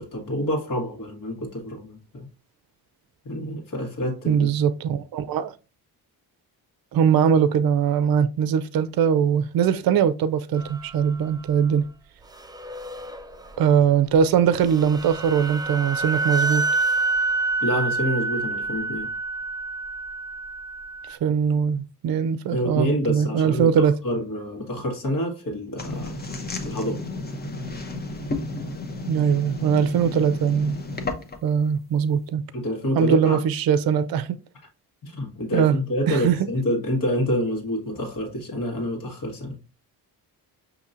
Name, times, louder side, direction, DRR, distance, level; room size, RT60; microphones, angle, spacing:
voice 1, 0.0-2.3 3.2-4.5 17.6-19.1 22.5-26.1 26.6-27.0 32.5-33.4 35.0-39.5, equal, 55° left, 1.5 m, -27 dB
voice 2, 4.3-5.5 6.9-11.9 13.6-16.7 21.1-24.0 29.1-30.7 31.4-32.4 33.0-34.4 35.5-35.8 36.1-36.4, right 7 dB, 65° right, 0.5 m, -21 dB
sound 1, 10.6-11.3 12.3-13.6 14.2-14.3 14.6-21.2, right 3 dB, 10° right, 0.4 m, -28 dB
sound 2, 25.8-31.5, left 2 dB, 25° left, 0.7 m, -32 dB
5.4 x 2.8 x 2.5 m
cardioid pair, 80°, 39 cm